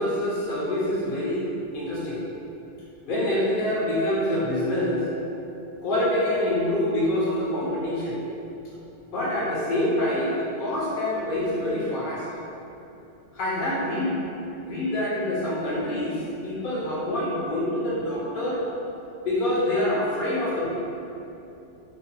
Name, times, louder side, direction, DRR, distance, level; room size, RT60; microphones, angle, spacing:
voice 1, 0.0-1.4 1.7-2.2 3.0-5.0 5.8-8.2 9.1-12.2 13.3-14.2 14.7-18.6 19.2-20.7, left 1 dB, 55° left, -6 dB, 0.8 m, -26 dB
3.0 x 2.1 x 2.7 m, 2.8 s
omnidirectional pair, 1.2 m